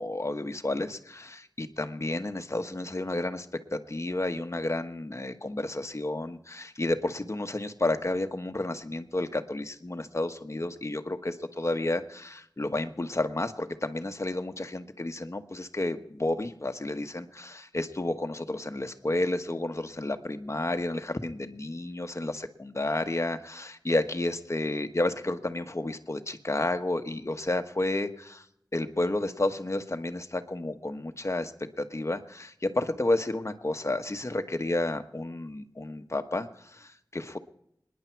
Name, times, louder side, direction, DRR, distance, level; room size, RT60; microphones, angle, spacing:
voice 1, 0.0-3.5 3.7-28.4 28.7-31.5 31.8-37.4, left 2 dB, 40° left, 7 dB, 1.2 m, -31 dB
26.5 x 10.5 x 4.6 m, 0.74 s
wide cardioid pair, 55°, 7 cm